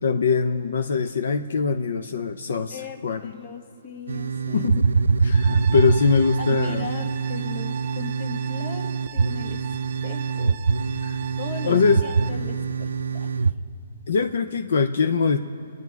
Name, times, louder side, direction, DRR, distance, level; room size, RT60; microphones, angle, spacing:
voice 1, 0.0-3.3 4.5-4.9 5.2-6.9 11.0-11.2 11.6-12.0 14.1-15.4, left 5 dB, 70° left, 9 dB, 0.6 m, -22 dB
voice 2, 2.7-4.7 5.4-5.6 6.4-9.6 10.0-10.6 11.4-13.3, left 4 dB, 30° left, 6 dB, 1.0 m, -38 dB
sound 1, 4.1-13.5, right 5 dB, 90° right, 0.4 m, -24 dB
sound 2, 5.3-12.3, right 10 dB, 35° right, 0.6 m, -40 dB
25.5 x 9.6 x 4.7 m, 2.6 s
hypercardioid pair, 165°, 0 cm